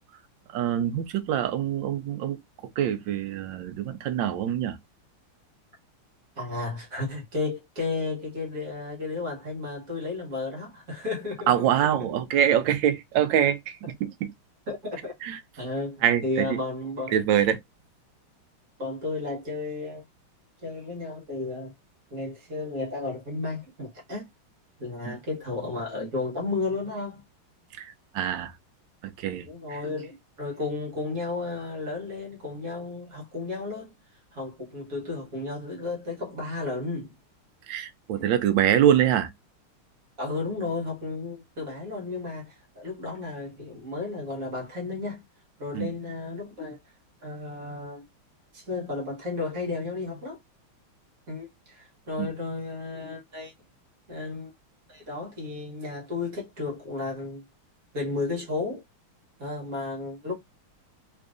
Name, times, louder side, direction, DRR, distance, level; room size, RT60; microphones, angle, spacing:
voice 1, 0.5-2.4 2.8-4.8 11.5-14.1 15.2-15.4 16.0-16.5 17.1-17.6 25.1-25.2 27.8-28.5 29.0-29.8 37.7-39.3 45.7-45.9 52.2-52.3, right 10 dB, 70° right, 1.2 m, -24 dB
voice 2, 6.4-11.7 14.7-15.1 15.6-17.1 18.8-20.0 20.6-21.7 22.1-24.3 24.8-27.2 29.5-33.9 34.3-37.2 38.2-38.3 40.2-45.2 45.6-46.8 47.2-48.0 48.5-50.4 51.3-53.5 54.1-54.5 54.9-57.4 57.9-58.8 59.4-60.4, left 3 dB, 45° right, 1.6 m, -33 dB
3.6 x 3.1 x 2.5 m
omnidirectional pair, 2.3 m